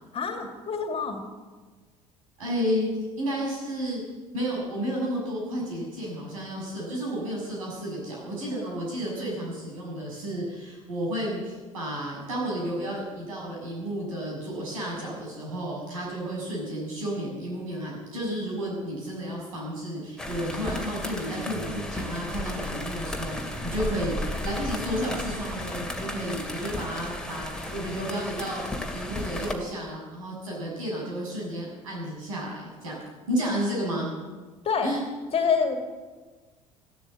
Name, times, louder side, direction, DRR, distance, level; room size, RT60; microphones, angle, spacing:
voice 1, 0.1-1.2 34.6-34.9 35.3-35.8, left 6 dB, 35° left, 5 dB, 2.4 m, -26 dB
voice 2, 2.4-2.9 3.2-4.0 4.3-33.0 33.3-34.1 34.8-35.0, equal, 75° right, -3 dB, 6.7 m, -32 dB
sound 1, 20.2-29.5, left 1 dB, 5° left, 2.4 m, -34 dB
15.0 x 12.5 x 7.6 m, 1.3 s
figure-of-eight pair, 60°, 18 cm